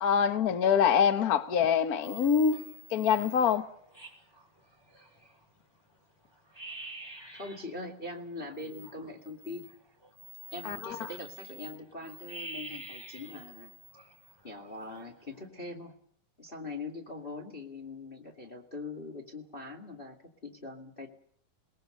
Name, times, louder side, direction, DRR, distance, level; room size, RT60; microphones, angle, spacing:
voice 1, 0.0-2.6 2.9-3.7 10.6-11.0, left 7 dB, 80° left, 0.8 m, -25 dB
sound 1, 1.3-1.7 2.0-5.5 5.9-6.0 6.3-7.7 8.1-15.5, right 1 dB, 5° right, 6.4 m, -48 dB
voice 2, 7.3-9.7 10.5-13.7 14.4-15.9 16.4-20.2 20.4-21.1, left 2 dB, 20° left, 1.9 m, -42 dB
28.5 x 19.5 x 6.6 m
omnidirectional pair, 3.8 m